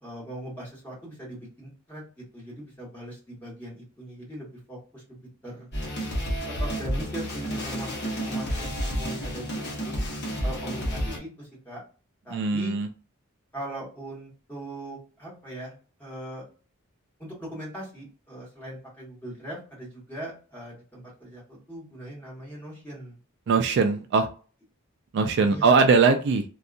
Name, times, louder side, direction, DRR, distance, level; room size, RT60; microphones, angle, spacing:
voice 1, 0.0-5.7 6.5-10.0 10.4-11.8 12.2-12.7 13.5-16.4 17.2-23.2 25.5-25.8, right 1 dB, 10° left, -5 dB, 1.3 m, -40 dB
sound 1, 5.7-11.2, equal, 50° left, 0.9 m, -30 dB
voice 2, 12.3-12.9 23.5-24.3 25.1-26.4, right 4 dB, 50° right, 6 dB, 0.3 m, -21 dB
2.7 x 2.3 x 2.4 m, 0.37 s
head